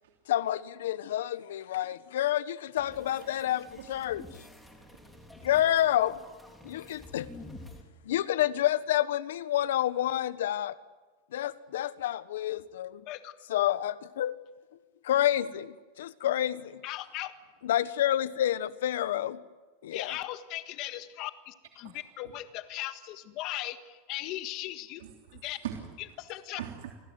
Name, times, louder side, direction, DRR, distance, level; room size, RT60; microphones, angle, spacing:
voice 1, 0.3-4.2 5.4-6.2 6.6-7.3 8.1-10.8 11.3-13.0 13.5-14.3 15.0-16.8 17.6-19.4 19.8-20.1, left 12 dB, 90° left, 15 dB, 1.2 m, -29 dB
sound 1, 2.8-7.8, left 1 dB, 5° left, 3.5 m, -49 dB
voice 2, 4.9-5.5 21.8-21.9 25.0-25.9 26.6-26.9, right 10 dB, 85° right, 2 dB, 3.1 m, -41 dB
voice 3, 16.8-17.3 19.9-25.0 25.3-25.6 26.2-26.6, left 15 dB, 45° left, 9 dB, 1.6 m, -38 dB
28.5 x 19.5 x 9.6 m, 1.3 s
supercardioid pair, 155°, 0 cm